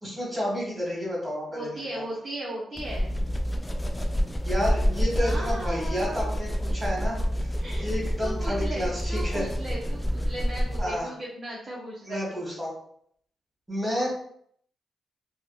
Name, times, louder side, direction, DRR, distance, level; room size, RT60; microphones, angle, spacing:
voice 1, 0.0-2.0 4.4-9.5 10.8-11.1 12.0-12.7 13.7-14.1, equal, 10° right, -4 dB, 1.5 m, -31 dB
voice 2, 1.5-3.1 5.2-6.3 7.6-7.8 8.2-12.4, right 1 dB, 40° right, -5 dB, 0.8 m, -37 dB
sound 1, 2.8-11.0, equal, 20° left, 0.3 m, -28 dB
3.6 x 2.2 x 2.2 m, 0.66 s
cardioid pair, 70°, 0 cm